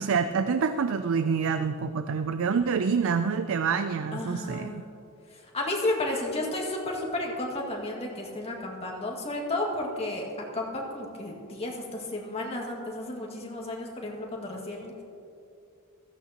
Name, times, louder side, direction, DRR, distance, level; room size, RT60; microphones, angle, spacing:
voice 1, 0.0-4.8, right 5 dB, 65° right, 10 dB, 0.4 m, -27 dB
voice 2, 4.1-4.9 5.3-15.0, left 2 dB, 30° left, -2 dB, 2.0 m, -32 dB
15.5 x 15.0 x 3.0 m, 2.7 s
head